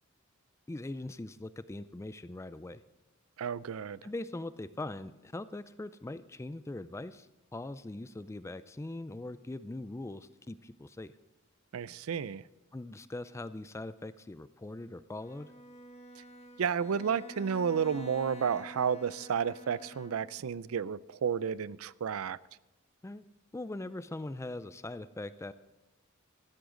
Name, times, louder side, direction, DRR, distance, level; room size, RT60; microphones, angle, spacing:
voice 1, 0.7-2.8 4.0-11.1 12.7-15.5 23.0-23.2 23.5-25.5, left 2 dB, 15° left, 14 dB, 0.4 m, -41 dB
voice 2, 3.4-4.0 11.7-12.4 16.2-16.3 16.6-22.4, right 7 dB, 85° right, 19 dB, 0.4 m, -32 dB
Bowed string instrument, 15.2-20.5, right 1 dB, 30° left, 1.0 m, -50 dB
15.0 x 13.0 x 3.8 m, 1.1 s
head